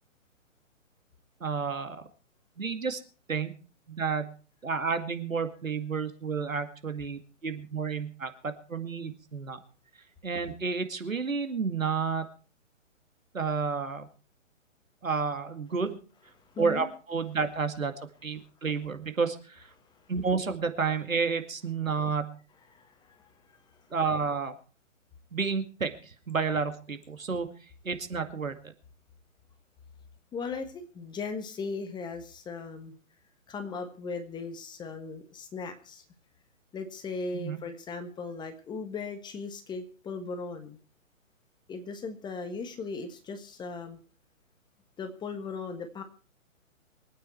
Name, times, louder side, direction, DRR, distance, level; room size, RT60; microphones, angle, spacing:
voice 1, 1.4-2.0 2.6-3.0 3.3-3.5 3.9-4.3 4.6-9.6 10.2-12.3 13.3-14.1 15.0-16.0 16.6-17.9 18.2-19.7 20.1-22.3 23.9-24.5 25.3-27.5 27.8-28.6 37.3-37.6, right 5 dB, 85° right, 8 dB, 2.3 m, -30 dB
voice 2, 16.5-16.9 22.7-23.6 30.3-32.9 33.5-36.0 36.7-40.8 41.7-44.0 45.0-46.0, left 4 dB, 10° left, 7 dB, 1.4 m, -38 dB
24.0 x 9.1 x 4.6 m, 0.39 s
figure-of-eight pair, 130°, 39 cm